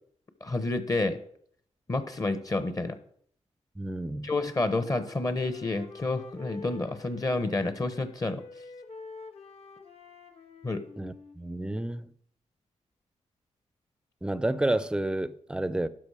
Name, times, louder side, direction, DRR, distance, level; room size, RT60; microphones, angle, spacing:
voice 1, 0.4-1.2 1.9-3.0 4.2-8.4 10.6-10.8, left 2 dB, 30° left, 0.9 m, -29 dB
voice 2, 3.8-4.3 11.0-12.1 14.2-15.9, right 1 dB, 5° right, 0.5 m, -30 dB
Wind instrument woodwind instrument, 4.0-7.6 7.9-11.9, left 4 dB, 55° left, 1.2 m, -49 dB
12.0 x 5.1 x 4.8 m
cardioid pair, 80°, 12 cm